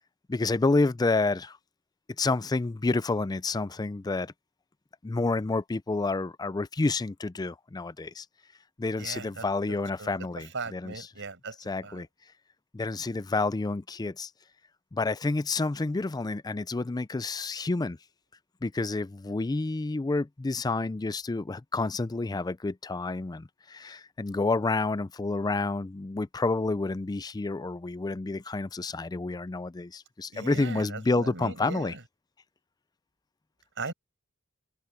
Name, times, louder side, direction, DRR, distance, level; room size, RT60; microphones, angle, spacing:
voice 1, 0.3-1.6 2.2-4.3 5.0-8.2 8.8-11.1 11.7-12.1 12.7-14.3 14.9-18.0 18.6-31.9, left 3 dB, 20° left, 0.4 m, -29 dB
voice 2, 8.9-9.4 10.0-12.0 30.3-32.0 33.8-33.9, right 4 dB, 55° right, 7.8 m, -39 dB
head